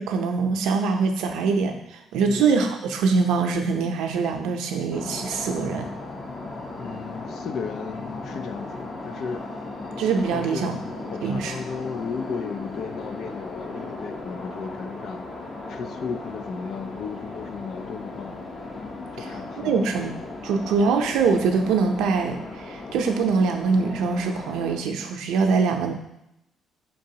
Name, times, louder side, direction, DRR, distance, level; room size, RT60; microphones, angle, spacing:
voice 1, 0.0-5.9 10.0-10.8 11.2-11.6 19.2-19.3 19.6-20.1 20.4-25.9, right 5 dB, 85° right, 4 dB, 0.6 m, -23 dB
voice 2, 2.2-2.5 6.8-9.4 10.3-10.8 11.0-15.2 15.7-18.4 19.1-20.0, left 5 dB, 65° left, 9 dB, 0.4 m, -35 dB
sound 1, 4.9-24.8, left 2 dB, 40° left, 0.9 m, -37 dB
4.5 x 3.9 x 2.8 m, 0.82 s
cardioid pair, 85°, 0 cm